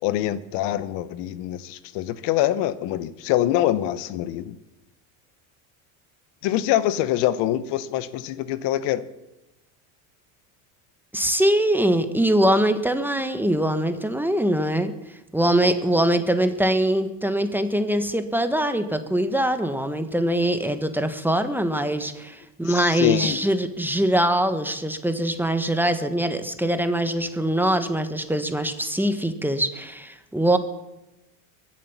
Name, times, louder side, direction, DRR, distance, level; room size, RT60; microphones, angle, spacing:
voice 1, 0.0-4.6 6.4-9.0 22.6-23.4, left 13 dB, 65° left, 15 dB, 1.0 m, -24 dB
voice 2, 11.1-14.9 15.3-30.6, right 1 dB, 5° right, 8 dB, 1.3 m, -23 dB
22.5 x 7.6 x 7.2 m, 0.97 s
supercardioid pair, 105°, 44 cm